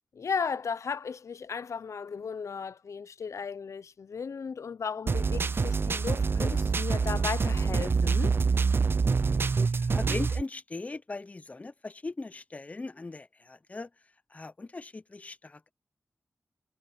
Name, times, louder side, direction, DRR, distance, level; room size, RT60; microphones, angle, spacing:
voice 1, 0.1-8.3, left 6 dB, 80° left, 0.6 m, -35 dB
sound 1, 5.1-10.4, right 5 dB, 45° right, 0.4 m, -26 dB
voice 2, 9.7-13.9 14.3-15.7, left 3 dB, 30° left, 0.5 m, -39 dB
wide cardioid pair, 105°, 5 cm